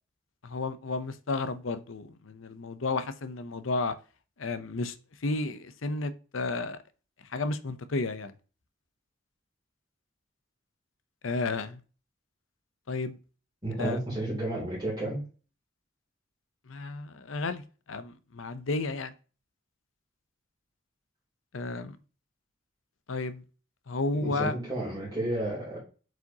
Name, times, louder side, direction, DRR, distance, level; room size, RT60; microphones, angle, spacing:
voice 1, 0.4-3.9 4.4-5.0 5.2-6.8 7.3-8.3 11.2-11.8 12.9-13.2 13.8-14.0 16.7-19.1 21.5-22.0 23.1-23.4 23.9-24.5, left 3 dB, 80° left, 0.7 m, -32 dB
voice 2, 13.6-15.2 24.1-25.8, right 1 dB, 20° right, 3.1 m, -32 dB
7.8 x 4.9 x 2.9 m
head